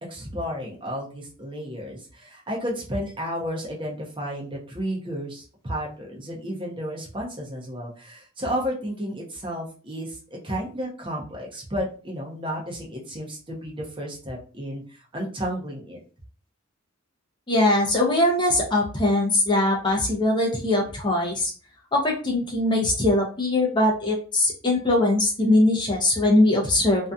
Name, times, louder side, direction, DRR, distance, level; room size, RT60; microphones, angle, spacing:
voice 1, 0.1-16.0, equal, 25° right, -2 dB, 0.6 m, -32 dB
voice 2, 17.5-21.5 21.9-27.1, left 1 dB, 20° left, -1 dB, 0.5 m, -21 dB
2.6 x 2.3 x 2.3 m, 0.37 s
head